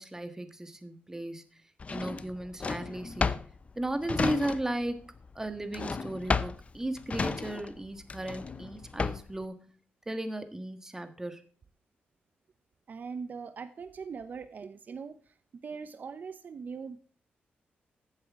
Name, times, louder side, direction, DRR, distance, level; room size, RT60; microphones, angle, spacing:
voice 1, 0.0-1.6 1.9-3.5 3.7-5.0 5.3-9.7 10.1-11.5, right 1 dB, 15° right, 9 dB, 1.5 m, -35 dB
Drawer open or close, 1.8-4.9 5.2-9.4, left 4 dB, 35° left, 0.7 m, -33 dB
voice 2, 12.9-15.4 15.6-17.0, right 5 dB, 50° right, 12 dB, 0.7 m, -41 dB
14.5 x 7.7 x 3.6 m, 0.42 s
cardioid pair, 110°, 4 cm